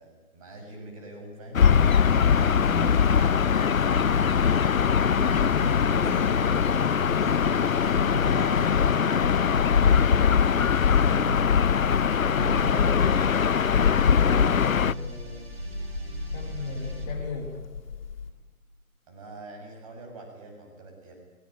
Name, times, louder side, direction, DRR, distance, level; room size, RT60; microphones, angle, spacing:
voice 1, 0.0-1.7 2.5-4.0 8.2-8.7 12.2-13.2 19.1-21.1, right 2 dB, 25° right, 2 dB, 6.8 m, -44 dB
Gull seagull / Ocean, 1.5-14.9, left 7 dB, 65° left, 0.8 m, -21 dB
sound 1, 1.7-17.1, right 2 dB, 45° right, 6.9 m, -40 dB
voice 2, 2.5-3.0 5.9-7.4 7.8-11.4 12.1-13.1 14.0-15.5 16.3-17.5, left 3 dB, 5° left, -3 dB, 1.4 m, -37 dB
sound 2, 11.6-18.3, left 6 dB, 35° left, 4.8 m, -38 dB
23.0 x 20.5 x 9.1 m, 1.2 s
figure-of-eight pair, 165°, 43 cm